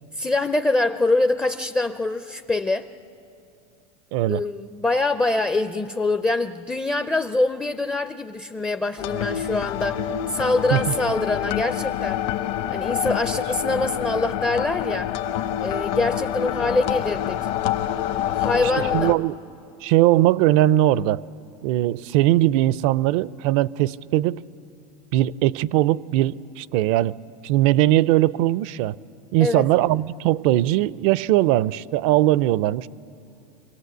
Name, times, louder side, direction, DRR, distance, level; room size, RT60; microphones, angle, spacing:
voice 1, 0.2-2.9 4.3-10.0 10.3-12.2 12.7-15.1 15.6-17.4 18.3-19.1 29.4-29.7, left 2 dB, 10° left, 10 dB, 0.4 m, -24 dB
voice 2, 4.1-4.4 10.7-10.9 18.6-19.4 19.8-21.2 21.6-24.4 25.1-27.1 27.4-29.0 29.3-32.9, right 15 dB, 60° right, 20 dB, 0.5 m, -20 dB
sound 1, 9.0-19.2, left 11 dB, 55° left, 0.9 m, -27 dB
24.5 x 17.5 x 8.0 m, 2.6 s
supercardioid pair, 135°, 20 cm